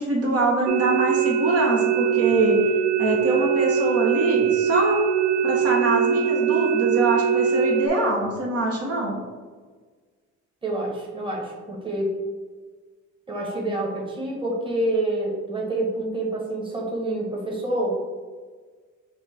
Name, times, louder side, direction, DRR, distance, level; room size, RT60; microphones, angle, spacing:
voice 1, 0.0-2.6 3.0-5.0 5.4-9.2, right 2 dB, 50° right, -2 dB, 1.0 m, -24 dB
sound 1, 0.7-7.9, right 8 dB, 70° right, 0.4 m, -22 dB
voice 2, 10.6-12.2 13.3-17.9, right 1 dB, 15° right, -2 dB, 1.2 m, -27 dB
4.6 x 2.4 x 4.1 m, 1.5 s
cardioid pair, 90°, 30 cm